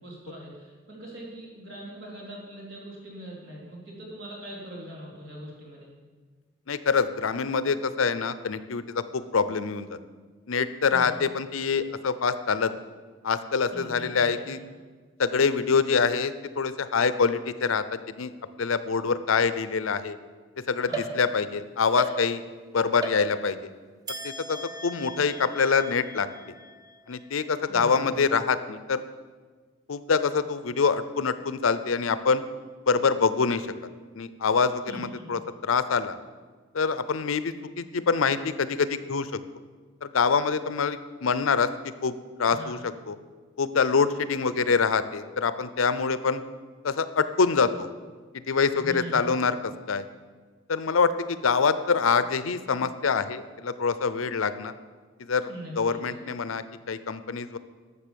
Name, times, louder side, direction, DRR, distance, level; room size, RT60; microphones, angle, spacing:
voice 1, 0.0-5.9 10.9-11.1 13.7-14.6 20.8-21.0 27.7-28.2 34.9-35.2 42.5-42.8 48.7-49.3 55.5-56.1, right 1 dB, 65° right, -4 dB, 3.5 m, -41 dB
voice 2, 6.7-10.0 10.5-12.7 13.2-14.6 15.2-17.8 18.2-18.3 18.6-20.2 20.7-22.4 22.7-23.6 24.2-24.6 24.8-26.3 27.1-29.0 29.9-32.4 32.9-33.6 34.2-36.1 36.7-39.3 40.0-41.7 42.0-42.1 42.4-42.8 43.1-43.2 43.6-46.4 46.8-47.9 48.5-49.6 49.9-50.0 50.7-54.7 55.3-55.5 55.8-57.6, left 5 dB, 80° left, 13 dB, 0.6 m, -25 dB
sound 1, 20.9-21.6 22.0-22.6 23.0-23.7 24.1-27.5, right 2 dB, 20° right, 1.0 m, -37 dB
12.0 x 7.0 x 6.9 m, 1.5 s
head